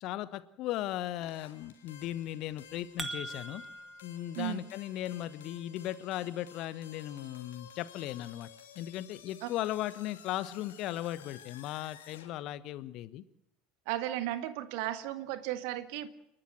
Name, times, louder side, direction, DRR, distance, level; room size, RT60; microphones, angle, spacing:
voice 1, 0.0-3.6 4.0-8.5 8.7-13.2, left 14 dB, 50° left, 15 dB, 1.2 m, -37 dB
sound 1, 1.2-12.3, left 8 dB, 70° left, 2.9 m, -54 dB
sound 2, 2.5-4.0, right 2 dB, 20° right, 2.3 m, -40 dB
voice 2, 13.9-16.1, right 14 dB, 55° right, 11 dB, 1.7 m, -35 dB
29.5 x 12.5 x 7.7 m, 0.82 s
figure-of-eight pair, 70°, 0 cm